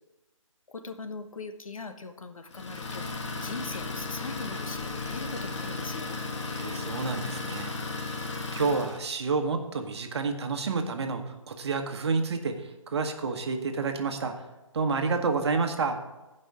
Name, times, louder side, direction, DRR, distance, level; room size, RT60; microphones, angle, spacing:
voice 1, 0.7-6.2, left 3 dB, 75° left, 8 dB, 1.2 m, -40 dB
Idling, 2.5-9.0, left 3 dB, 55° left, 1.6 m, -35 dB
voice 2, 6.5-7.7 8.5-14.3 14.7-16.0, right 4 dB, 50° right, 6 dB, 1.3 m, -29 dB
15.0 x 5.4 x 4.8 m, 1.1 s
hypercardioid pair, 155°, 17 cm